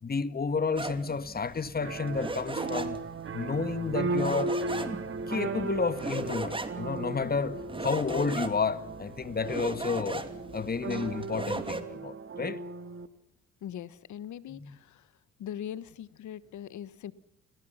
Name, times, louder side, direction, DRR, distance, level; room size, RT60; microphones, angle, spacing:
voice 1, 0.0-3.0 3.3-4.6 5.3-10.3 10.5-12.6 14.5-14.8, left 5 dB, 30° left, 1.9 m, -31 dB
sound 1, 0.8-11.8, right 2 dB, 15° right, 2.9 m, -38 dB
sound 2, 1.8-13.1, right 3 dB, 45° right, 2.3 m, -36 dB
voice 2, 13.6-15.1 15.4-17.1, left 10 dB, 70° left, 1.5 m, -41 dB
29.5 x 21.5 x 5.8 m
cardioid pair, 90°, 30 cm